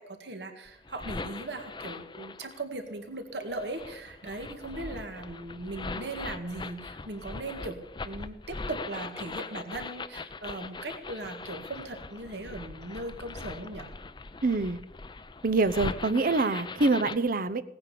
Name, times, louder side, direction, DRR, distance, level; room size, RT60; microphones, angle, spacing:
voice 1, 0.0-13.9, right 2 dB, 70° right, 6 dB, 1.9 m, -38 dB
sound 1, 0.7-2.6 3.4-17.2, left 3 dB, 25° left, 0.6 m, -41 dB
voice 2, 14.4-14.8 15.4-17.6, right 3 dB, 55° right, 13 dB, 0.8 m, -25 dB
17.5 x 9.6 x 6.8 m, 0.89 s
head